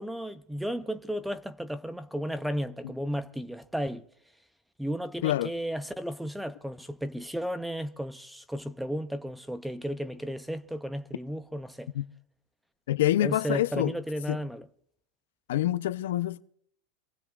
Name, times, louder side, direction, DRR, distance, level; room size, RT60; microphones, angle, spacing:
voice 1, 0.0-4.0 4.8-11.9 13.2-14.7, equal, ahead, 0.5 m, -34 dB
voice 2, 12.9-13.9 14.3-14.4 15.5-16.4, left 14 dB, 75° left, 0.6 m, -26 dB
26.5 x 18.0 x 2.4 m
supercardioid pair, 165°, 0 cm